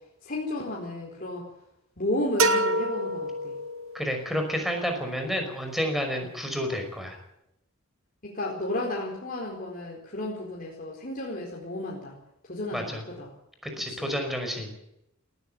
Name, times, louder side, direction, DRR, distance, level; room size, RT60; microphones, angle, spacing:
voice 1, 0.2-1.4 2.0-3.5 8.2-12.1 12.5-13.3 13.9-14.0, left 1 dB, 40° left, -3 dB, 4.4 m, -33 dB
sound 1, 2.4-4.1, right 2 dB, 75° right, 2.2 m, -26 dB
voice 2, 3.9-7.2 12.7-13.0 13.6-14.7, equal, ahead, 4 dB, 5.4 m, -30 dB
19.0 x 15.0 x 9.2 m, 0.82 s
head